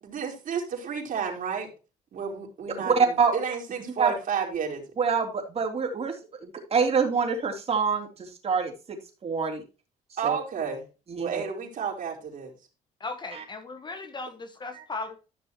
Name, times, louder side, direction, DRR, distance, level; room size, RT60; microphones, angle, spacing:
voice 1, 0.0-1.7 2.1-2.9 3.3-4.8 10.2-10.8 11.2-12.5, right 6 dB, 50° right, 4.2 m, -31 dB
voice 2, 2.9-3.4 4.0-4.1 5.0-9.6 10.2-10.4 11.1-11.4 13.3-13.4 14.7-14.8, right 5 dB, 35° right, 3.3 m, -26 dB
voice 3, 13.0-15.2, left 3 dB, 25° left, 1.3 m, -37 dB
14.0 x 6.2 x 3.0 m
cardioid pair, 110°, 17 cm